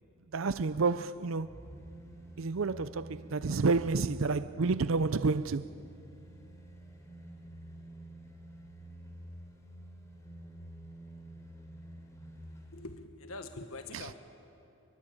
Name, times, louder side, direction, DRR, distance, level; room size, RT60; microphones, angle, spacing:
voice 1, 0.3-1.5 2.4-5.7 13.9-14.0, right 4 dB, 65° right, 0.6 m, -29 dB
sound 1, 1.3-12.9 13.3-13.4, right 1 dB, 15° left, 3.4 m, -49 dB
voice 2, 12.7-14.2, left 2 dB, 80° left, 1.5 m, -44 dB
28.0 x 22.5 x 8.9 m
head